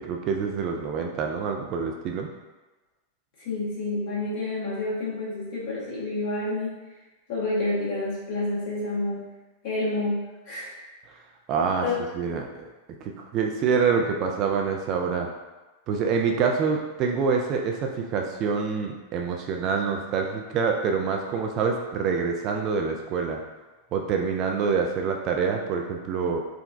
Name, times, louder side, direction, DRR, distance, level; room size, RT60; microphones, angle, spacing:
voice 1, 0.0-2.3 11.5-11.9 12.1-12.7 13.0-15.3 15.9-23.4 23.9-26.4, right 5 dB, 35° right, 2 dB, 0.3 m, -26 dB
voice 2, 3.4-6.8 7.3-9.2 9.6-10.8 11.8-11.9 12.2-12.4, left 2 dB, 45° left, -8 dB, 1.3 m, -29 dB
3.7 x 2.1 x 2.5 m, 1.2 s
figure-of-eight pair, 90°, 0 cm